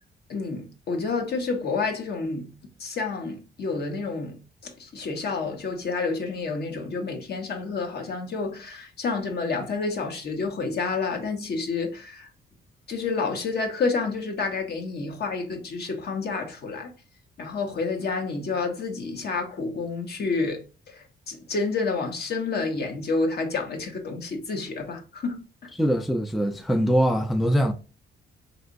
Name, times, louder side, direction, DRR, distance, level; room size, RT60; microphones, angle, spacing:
voice 1, 0.3-2.5 2.8-12.3 12.9-16.9 17.4-25.7, left 4 dB, 55° left, 1.0 m, -29 dB
voice 2, 25.8-27.7, equal, ahead, 0.4 m, -22 dB
3.2 x 2.9 x 2.6 m
cardioid pair, 90°, 20 cm